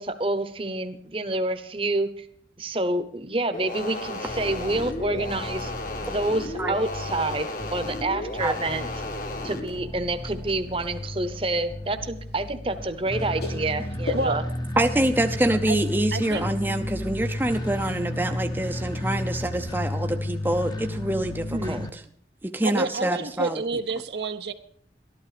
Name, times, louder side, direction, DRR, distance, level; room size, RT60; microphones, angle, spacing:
voice 1, 0.0-2.3 2.6-5.7 6.0-8.9 9.4-14.4 21.5-21.9, right 2 dB, 30° right, 10 dB, 0.9 m, -28 dB
sound 1, 3.5-9.7, left 2 dB, 50° left, 1.3 m, -34 dB
sound 2, 4.3-21.9, left 1 dB, 20° left, 0.8 m, -33 dB
sound 3, 6.0-14.4, left 3 dB, 75° left, 6.6 m, -42 dB
voice 2, 14.8-22.0 22.4-23.6, right 1 dB, 10° right, 5 dB, 0.6 m, -26 dB
voice 3, 16.1-16.5 22.6-24.5, right 3 dB, 70° right, 8 dB, 0.8 m, -29 dB
13.0 x 12.0 x 5.0 m, 0.64 s
head